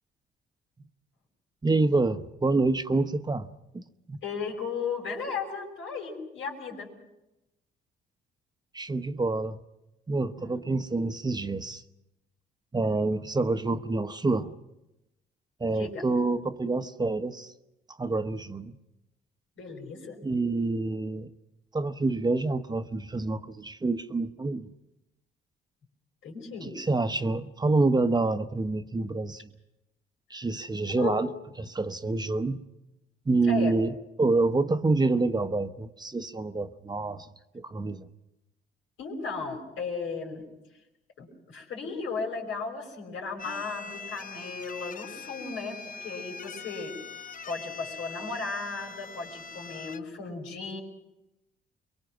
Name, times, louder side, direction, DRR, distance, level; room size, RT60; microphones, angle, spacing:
voice 1, 1.6-3.5 3.7-4.2 8.7-9.6 10.1-11.8 12.7-14.5 15.6-17.5 17.9-18.8 20.2-21.3 21.7-24.7 26.7-29.5 30.3-31.3 31.6-32.6 33.3-37.3 37.5-38.1 43.5-43.6, right 3 dB, 20° right, 10 dB, 0.9 m, -27 dB
voice 2, 4.2-6.9 10.4-10.6 15.7-16.0 19.6-20.2 26.2-26.7 30.9-31.3 33.4-33.7 39.0-40.5 41.2-46.9 47.5-50.8, left 4 dB, 80° left, 2 dB, 5.6 m, -35 dB
sound 1, 43.4-50.0, left 4 dB, 45° left, 0.8 m, -42 dB
23.5 x 23.0 x 6.1 m, 0.93 s
cardioid pair, 90°, 20 cm